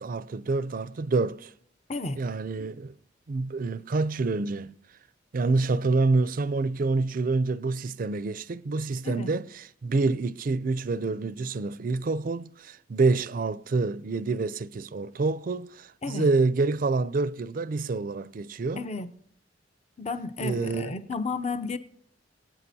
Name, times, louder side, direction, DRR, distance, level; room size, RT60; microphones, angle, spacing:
voice 1, 0.0-1.5 2.2-2.9 3.3-4.8 5.3-18.9 20.4-20.9, right 3 dB, 50° right, 0.4 m, -27 dB
voice 2, 18.7-19.1 20.0-21.8, left 3 dB, 35° left, 0.7 m, -32 dB
22.0 x 9.1 x 2.7 m
head